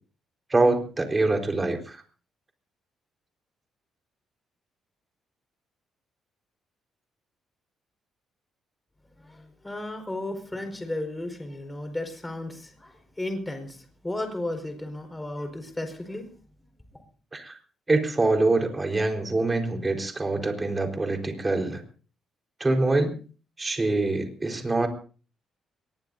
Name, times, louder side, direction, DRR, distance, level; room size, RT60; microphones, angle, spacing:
voice 1, 0.5-2.0 17.3-17.6 17.9-21.8 22.6-23.1 23.6-24.9, right 2 dB, 20° right, 3 dB, 4.4 m, -24 dB
voice 2, 9.1-16.3 16.9-17.0, left 1 dB, 10° left, 5 dB, 5.1 m, -34 dB
23.0 x 20.5 x 2.7 m, 0.39 s
cardioid pair, 90°, 0 cm